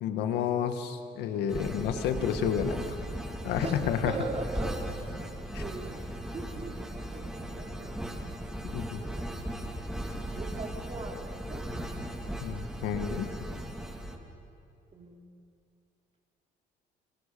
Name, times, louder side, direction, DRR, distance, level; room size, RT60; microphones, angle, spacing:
voice 1, 0.0-3.0 3.4-4.1 5.5-5.6 8.7-9.0 12.4-13.3, left 8 dB, 85° left, 8 dB, 1.9 m, -30 dB
sound 1, 1.5-14.2, right 1 dB, 5° right, 2.8 m, -37 dB
voice 2, 4.0-4.7 5.0-5.1 5.5-6.1 6.3-8.0 8.9-9.3 10.3-11.7 14.9-15.2, right 3 dB, 35° right, 1 dB, 4.6 m, -40 dB
29.0 x 28.0 x 7.0 m, 2.6 s
cardioid pair, 110°, 17 cm